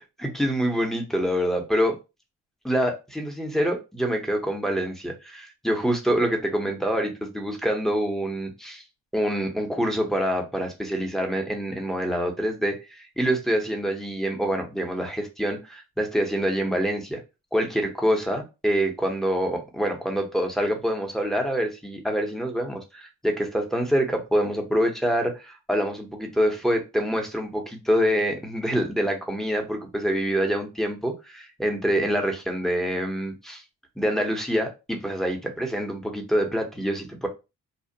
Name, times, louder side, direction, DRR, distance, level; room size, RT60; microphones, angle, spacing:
voice 1, 0.2-2.0 2.6-8.8 9.1-17.2 17.5-33.6 34.0-37.3, equal, ahead, 0.7 m, -26 dB
2.7 x 2.0 x 2.6 m
cardioid pair, 90°, 30 cm